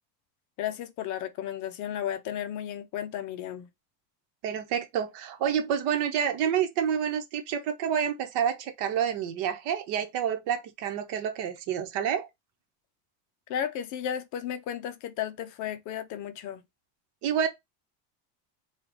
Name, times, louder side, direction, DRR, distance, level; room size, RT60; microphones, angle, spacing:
voice 1, 0.6-3.7 13.5-16.6, left 10 dB, 40° left, 0.5 m, -34 dB
voice 2, 4.4-12.3 17.2-17.5, right 8 dB, 55° right, 1.1 m, -28 dB
3.8 x 2.4 x 4.5 m
cardioid pair, 170°, 47 cm